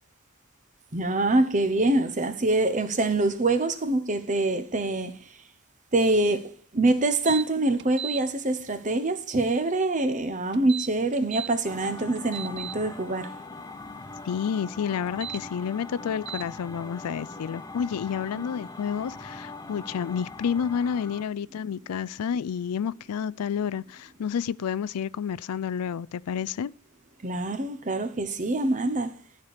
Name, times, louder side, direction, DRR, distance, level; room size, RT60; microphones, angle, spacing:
voice 1, 0.9-5.2 5.9-13.3 18.3-18.4 27.2-29.1, right 2 dB, 35° right, 0.9 m, -25 dB
sound 1, 7.3-7.4 7.8-8.2 10.5-11.5 12.0-12.7 15.1-15.4 16.3-16.4, right 10 dB, 50° right, 0.4 m, -35 dB
sound 2, 11.6-21.2, left 3 dB, 15° left, 0.6 m, -41 dB
voice 2, 14.3-26.7, left 7 dB, 90° left, 0.4 m, -30 dB
12.5 x 4.4 x 6.6 m
head